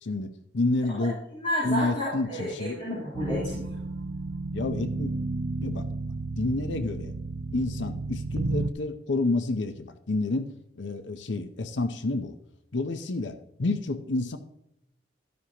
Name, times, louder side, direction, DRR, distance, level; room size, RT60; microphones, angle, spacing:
voice 1, 0.0-1.2 1.6-2.8 4.5-5.1 5.6-5.9 6.4-7.1 7.5-12.4 12.7-14.4, left 2 dB, 80° left, 9 dB, 0.7 m, -29 dB
voice 2, 1.3-3.7, equal, 30° left, -8 dB, 3.7 m, -31 dB
sound 1, 3.1-8.7, right 3 dB, 80° right, 0.5 m, -32 dB
13.5 x 9.5 x 2.9 m, 0.82 s
head